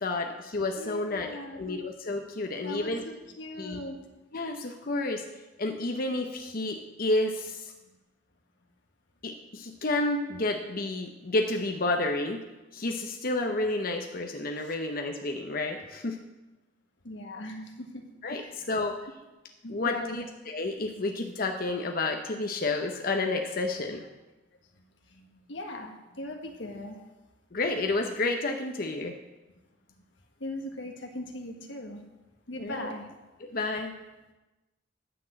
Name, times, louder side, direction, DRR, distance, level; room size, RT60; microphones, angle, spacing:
voice 1, 0.0-3.0 3.6-3.8 4.3-5.2 5.6-7.7 9.2-12.4 12.7-16.2 18.2-19.0 19.7-24.0 27.5-29.1 32.6-32.9 33.4-34.0, left 2 dB, 50° left, 3 dB, 0.8 m, -30 dB
voice 2, 0.8-1.6 2.6-4.0 17.0-18.0 18.4-18.5 19.6-20.2 25.1-27.0 30.4-32.0 32.5-33.1, left 1 dB, 85° left, 3 dB, 1.5 m, -39 dB
10.0 x 6.1 x 7.6 m, 1.1 s
head